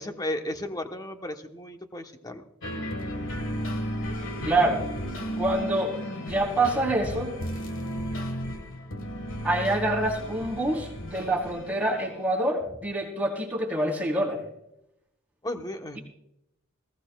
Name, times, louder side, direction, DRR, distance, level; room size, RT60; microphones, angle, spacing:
voice 1, 0.0-2.4 15.4-16.0, left 1 dB, 20° left, 5 dB, 1.0 m, -34 dB
sound 1, 2.6-12.3, equal, 65° left, 1.6 m, -34 dB
voice 2, 4.4-4.8 5.4-7.3 9.4-14.4, right 1 dB, 10° right, -2 dB, 3.4 m, -26 dB
19.5 x 16.5 x 2.3 m, 0.83 s
head